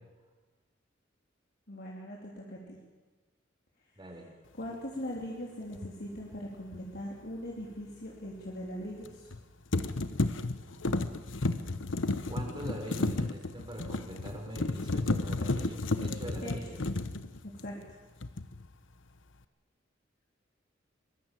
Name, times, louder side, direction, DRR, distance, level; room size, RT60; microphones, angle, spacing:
voice 1, 1.7-2.8 4.5-9.3 16.4-16.7 17.4-17.7, equal, 55° left, -3 dB, 3.5 m, -40 dB
voice 2, 4.0-4.3 12.3-16.8, right 1 dB, 25° right, 1 dB, 5.8 m, -42 dB
sound 1, 5.7-5.9 9.0-9.4 9.7-17.9 18.2-18.7, left 2 dB, 85° left, 1.1 m, -32 dB
23.5 x 21.0 x 7.6 m, 1.3 s
head